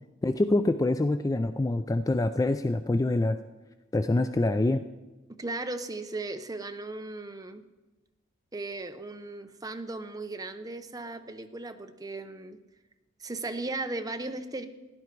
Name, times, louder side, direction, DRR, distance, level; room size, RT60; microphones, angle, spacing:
voice 1, 0.2-3.4 3.9-4.8, left 2 dB, 15° left, 10 dB, 0.3 m, -25 dB
voice 2, 5.4-7.6 8.5-12.6 13.2-14.6, right 2 dB, 15° right, 7 dB, 0.7 m, -36 dB
16.0 x 11.0 x 4.6 m, 1.1 s
head